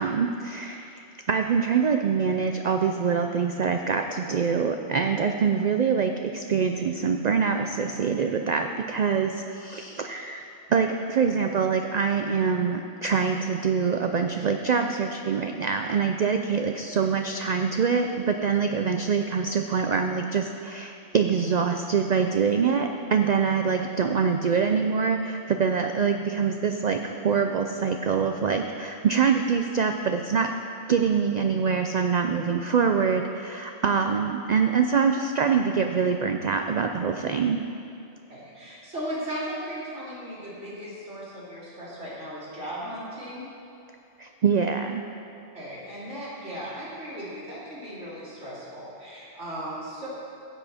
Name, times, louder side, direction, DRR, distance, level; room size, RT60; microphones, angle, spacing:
voice 1, 0.0-10.4 10.7-30.5 30.9-37.6 44.2-45.1, right 6 dB, 55° right, 5 dB, 0.5 m, -25 dB
voice 2, 38.3-43.5 45.5-50.1, equal, 90° right, -8 dB, 3.4 m, -37 dB
16.0 x 8.2 x 4.3 m, 2.7 s
omnidirectional pair, 1.2 m